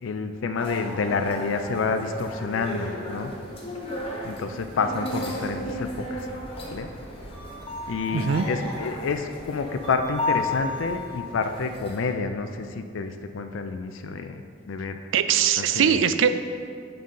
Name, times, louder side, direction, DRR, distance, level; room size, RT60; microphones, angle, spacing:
voice 1, 0.0-3.3 4.2-6.3 6.7-6.9 7.9-14.4 14.7-15.1 15.6-16.0, left 4 dB, 85° left, 7 dB, 0.4 m, -29 dB
sound 1, 0.6-12.1, left 1 dB, 30° left, 1.3 m, -34 dB
voice 2, 8.1-8.4 15.1-16.3, right 8 dB, 80° right, 10 dB, 0.4 m, -21 dB
8.7 x 5.5 x 3.7 m, 2.3 s
head